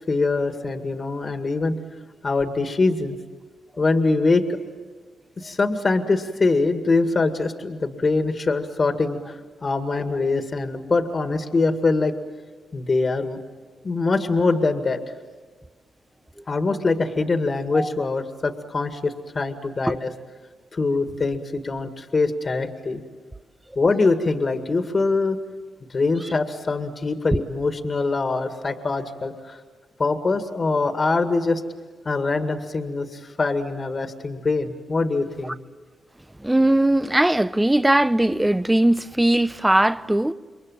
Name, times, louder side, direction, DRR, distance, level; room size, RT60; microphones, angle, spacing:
voice 1, 0.1-1.8 2.2-3.2 3.8-4.6 5.4-12.1 12.7-13.4 13.8-15.0 16.5-20.1 20.7-23.0 23.8-25.4 25.9-29.6 30.0-31.6 32.1-35.5, left 3 dB, 45° left, 2.0 m, -23 dB
voice 2, 36.4-40.3, right 1 dB, 10° right, 0.8 m, -19 dB
28.5 x 22.5 x 9.1 m
cardioid pair, 60°, 0 cm